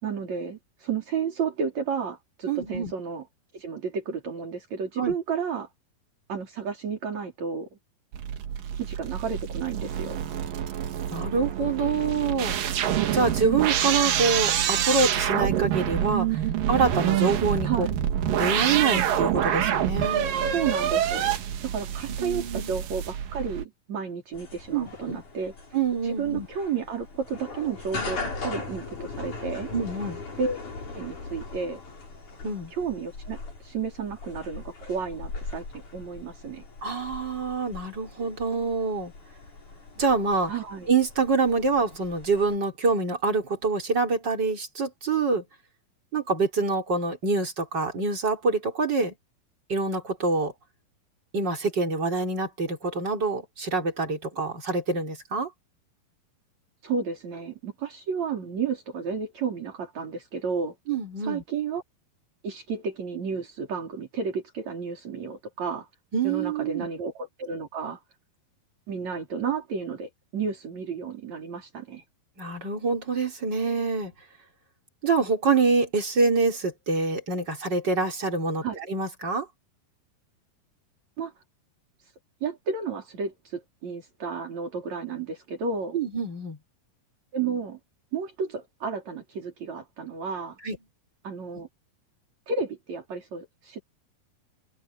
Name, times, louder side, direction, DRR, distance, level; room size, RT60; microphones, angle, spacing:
voice 1, 0.0-3.3 3.5-5.7 6.3-7.7 8.8-10.2 17.6-18.0 20.4-21.3 21.6-25.5 26.0-29.7 30.4-30.6 30.9-31.8 32.7-35.7 35.9-36.6 40.5-40.9 56.8-60.7 61.2-61.8 62.4-65.9 66.2-68.0 68.9-72.0 78.6-78.8 81.2-81.3 82.0-82.1 82.4-86.0 87.3-87.8 88.1-90.6 91.2-91.7 92.5-93.8, right 5 dB, 45° right, 5.5 m, -32 dB
voice 2, 2.5-2.9 5.0-5.1 11.1-12.6 13.1-16.4 16.7-17.9 18.3-20.3 22.2-22.7 24.7-25.2 25.7-26.5 29.7-30.2 32.4-32.7 36.8-39.1 40.0-40.5 40.9-45.4 46.1-49.1 49.7-50.5 51.3-55.5 60.9-61.4 66.1-66.9 72.4-74.1 75.0-79.5 85.9-86.6 90.6-90.8, right 4 dB, 30° right, 4.0 m, -26 dB
sound 1, 8.1-23.6, right 10 dB, 70° right, 3.1 m, -27 dB
sound 2, 24.3-42.6, left 3 dB, 55° left, 8.0 m, -40 dB
open air
omnidirectional pair, 4.3 m